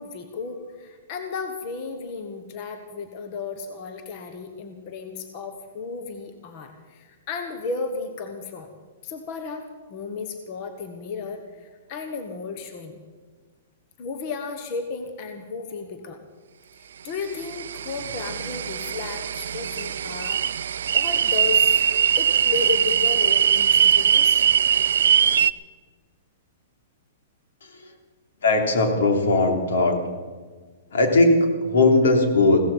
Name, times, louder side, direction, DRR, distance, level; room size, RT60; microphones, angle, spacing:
voice 1, 0.0-8.7 9.0-13.0 14.0-16.2 16.8-20.4 20.9-21.7 22.2-24.4, left 4 dB, 30° left, 6 dB, 1.3 m, -34 dB
sound 1, 17.4-25.5, right 8 dB, 75° right, 0.5 m, -21 dB
voice 2, 28.4-30.0 30.9-32.6, left 2 dB, 85° left, 4 dB, 3.2 m, -19 dB
16.5 x 14.5 x 5.5 m, 1.5 s
hypercardioid pair, 175°, 0 cm